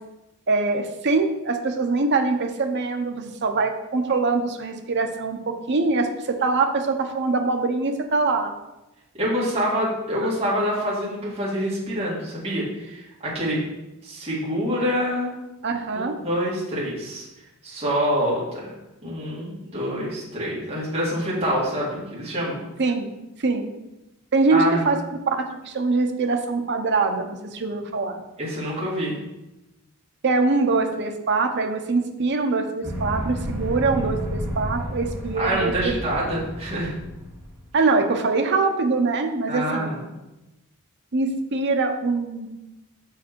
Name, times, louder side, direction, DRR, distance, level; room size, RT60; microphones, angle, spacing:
voice 1, 0.5-8.5 15.6-16.2 22.8-23.1 23.4-23.7 24.3-25.0 25.3-28.2 30.2-35.9 37.7-39.9 41.1-42.5, right 3 dB, 55° right, 5 dB, 0.7 m, -23 dB
voice 2, 9.1-13.6 14.0-15.3 15.9-17.3 17.6-18.7 19.0-22.6 24.5-24.8 28.4-29.2 35.3-36.9 39.5-40.0, equal, 30° right, -7 dB, 2.1 m, -26 dB
sound 1, 32.8-37.6, equal, 5° right, 2.1 m, -31 dB
6.1 x 4.9 x 4.5 m, 0.98 s
head